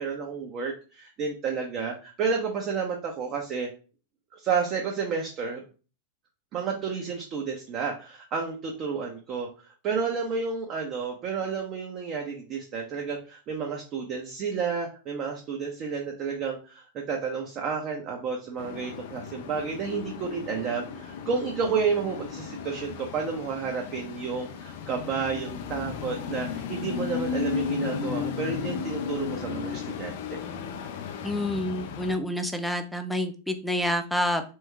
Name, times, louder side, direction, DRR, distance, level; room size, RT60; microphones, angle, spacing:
voice 1, 0.0-3.7 4.4-5.6 6.5-30.4, right 5 dB, 35° right, 0 dB, 0.7 m, -31 dB
sound 1, 18.6-32.2, left 6 dB, 50° left, 0.5 m, -35 dB
voice 2, 31.2-34.4, left 1 dB, ahead, 6 dB, 0.5 m, -28 dB
3.4 x 3.1 x 3.3 m, 0.36 s
figure-of-eight pair, 90°, 0 cm